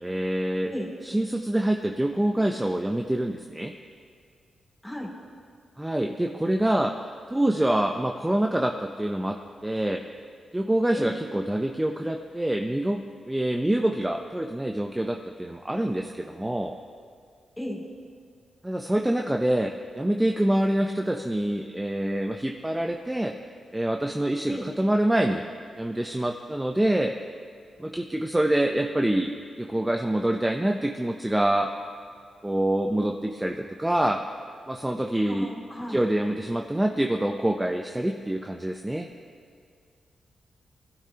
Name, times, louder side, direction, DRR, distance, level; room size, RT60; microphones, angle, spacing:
voice 1, 0.0-0.7 1.0-3.7 5.8-6.9 7.3-9.4 9.6-10.0 10.5-16.8 18.6-23.3 23.7-25.4 25.8-27.1 27.8-29.3 29.6-31.7 32.4-34.2 34.7-35.5 35.9-39.1, right 1 dB, 10° right, 3 dB, 0.7 m, -26 dB
voice 2, 35.3-36.0, equal, 10° left, -1 dB, 2.7 m, -34 dB
21.0 x 12.0 x 2.9 m, 2.2 s
cardioid pair, 80°, 0 cm